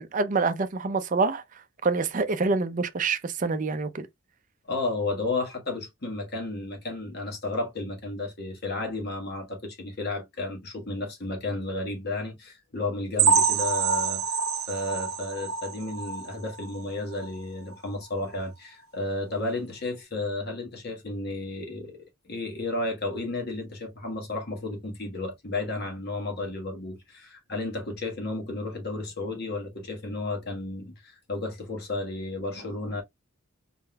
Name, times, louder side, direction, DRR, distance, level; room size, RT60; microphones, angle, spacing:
voice 1, 0.0-1.4 1.8-4.1, right 4 dB, 35° right, 0.4 m, -26 dB
voice 2, 4.7-14.4 14.7-33.0, left 2 dB, 50° left, 1.4 m, -33 dB
sound 1, 13.2-16.8 17.2-17.4 17.7-17.8 18.3-18.4, right 6 dB, 80° right, 0.7 m, -26 dB
4.3 x 3.6 x 2.2 m
head